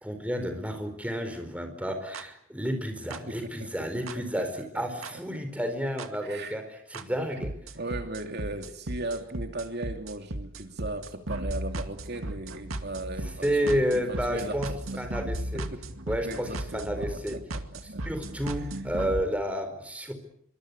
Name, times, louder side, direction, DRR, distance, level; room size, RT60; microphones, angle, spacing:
voice 1, 0.0-7.6 13.4-14.7 14.9-15.7 16.1-17.4 18.0-20.1, equal, 5° right, 7 dB, 4.5 m, -31 dB
sound 1, 2.1-2.2 3.1-3.2 4.1-4.2 5.0-5.1 6.0-6.1 6.9-7.0 7.4-19.2, right 1 dB, 75° right, 2.2 m, -36 dB
voice 2, 3.3-3.7 4.0-4.1 4.3-4.8 6.2-6.6 7.7-15.1 15.5-15.8 16.2-18.0 18.6-18.7, right 2 dB, 50° right, 5 dB, 2.6 m, -37 dB
26.0 x 24.5 x 8.3 m, 0.67 s
head